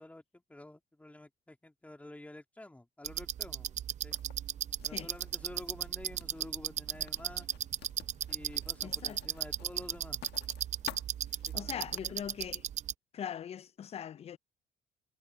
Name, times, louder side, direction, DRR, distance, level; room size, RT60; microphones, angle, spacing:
voice 1, 0.0-4.2 4.8-7.5 8.3-10.2 11.5-11.8, left 1 dB, 10° left, 3.0 m, -50 dB
sound 1, 3.0-12.9, right 10 dB, 45° right, 0.5 m, -36 dB
Writing, 4.1-12.0, left 14 dB, 75° left, 1.5 m, -52 dB
voice 2, 8.8-9.2 11.5-12.7 13.1-14.4, left 9 dB, 35° left, 0.4 m, -41 dB
cardioid pair, 110°, 17 cm